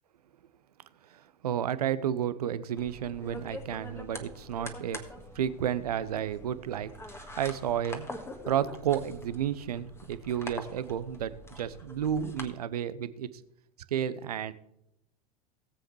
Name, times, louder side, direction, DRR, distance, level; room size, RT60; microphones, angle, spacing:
voice 1, 1.1-5.0 5.3-8.1 8.5-13.3 13.9-14.5, right 9 dB, 75° right, 15 dB, 0.7 m, -32 dB
sound 1, 2.8-12.5, left 1 dB, 15° left, 1.6 m, -45 dB
18.5 x 7.8 x 3.2 m, 0.83 s
figure-of-eight pair, 80°, 20 cm